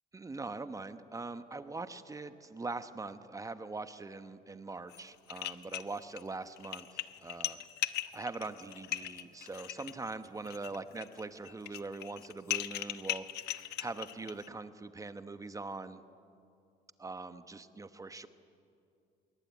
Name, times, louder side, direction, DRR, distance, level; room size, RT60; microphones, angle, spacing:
voice 1, 0.1-7.6 8.0-16.0 17.0-18.3, right 3 dB, 20° right, 10 dB, 1.1 m, -42 dB
sound 1, 4.9-5.0 5.3-6.2 6.6-14.5, left 13 dB, 80° left, 1.0 m, -39 dB
26.0 x 23.0 x 9.5 m, 2.5 s
cardioid pair, 110°, 17 cm